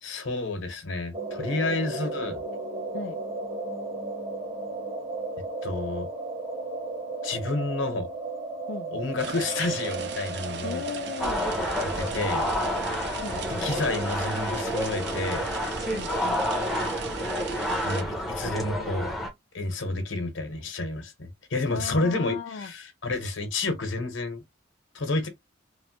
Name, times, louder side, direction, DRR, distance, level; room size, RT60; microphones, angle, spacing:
voice 1, 0.0-2.4 5.6-6.1 7.2-8.1 8.9-10.8 11.8-12.5 13.6-15.5 17.8-19.1 19.5-24.4 24.9-25.3, left 2 dB, 85° left, 0.9 m, -30 dB
sound 1, 1.1-16.5, right 3 dB, 35° right, 1.2 m, -35 dB
voice 2, 8.7-9.0 10.6-11.5 13.2-13.7 15.9-16.5 21.6-22.7, left 5 dB, 60° left, 0.4 m, -37 dB
sound 2, 9.2-18.0, right 5 dB, 60° right, 0.5 m, -38 dB
sound 3, 11.2-19.3, equal, ahead, 0.6 m, -29 dB
3.0 x 2.1 x 2.8 m
head